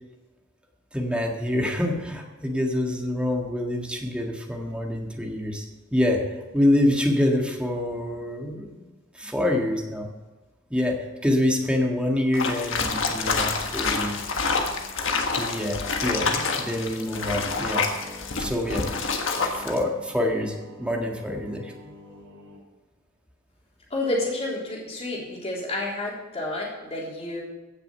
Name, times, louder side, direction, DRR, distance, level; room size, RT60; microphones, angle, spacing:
voice 1, 0.9-5.7 5.9-6.2 6.5-8.9 9.1-10.1 10.7-11.0 11.2-14.2 15.4-17.9 18.4-18.9 19.5-21.7, left 1 dB, 5° right, 1 dB, 1.7 m, -26 dB
sound 1, 12.3-19.8, left 4 dB, 65° left, 1.5 m, -27 dB
Singing, 13.1-22.6, left 1 dB, 85° right, 3.6 m, -47 dB
voice 2, 23.9-27.4, left 2 dB, 30° left, -4 dB, 3.6 m, -30 dB
16.0 x 6.8 x 6.8 m, 1.2 s
head